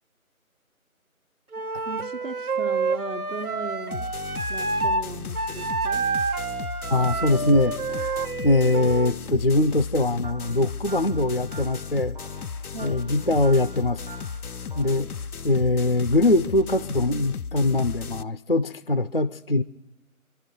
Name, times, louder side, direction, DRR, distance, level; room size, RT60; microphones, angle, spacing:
Wind instrument woodwind instrument, 1.5-5.1 5.3-9.2, right 3 dB, 85° right, 1.2 m, -28 dB
voice 1, 1.8-4.1 4.5-6.0 12.7-13.1, right 4 dB, 60° right, -3 dB, 1.3 m, -37 dB
sound 1, 3.9-18.2, left 5 dB, 90° left, 0.6 m, -35 dB
voice 2, 6.9-12.2 12.8-14.1 14.8-15.1 15.4-19.6, left 2 dB, 45° left, 13 dB, 0.4 m, -22 dB
sound 2, 10.2-15.0, right 4 dB, 35° right, 0.8 m, -47 dB
27.0 x 11.5 x 3.8 m, 1.0 s
figure-of-eight pair, 165°, 43 cm